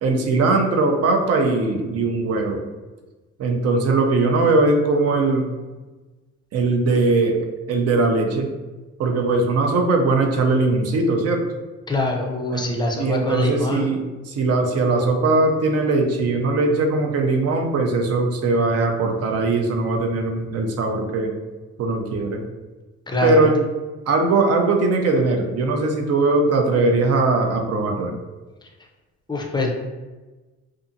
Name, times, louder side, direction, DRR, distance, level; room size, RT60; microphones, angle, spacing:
voice 1, 0.0-2.6 3.4-5.5 6.5-7.4 7.7-8.5 9.0-11.4 12.5-21.3 21.8-22.4 23.2-23.6 24.1-28.1, right 3 dB, 55° right, 3 dB, 0.5 m, -20 dB
voice 2, 11.9-13.9 23.1-23.5 29.3-29.7, left 2 dB, 15° left, 1 dB, 0.5 m, -24 dB
2.6 x 2.4 x 2.6 m, 1.2 s
cardioid pair, 90°, 30 cm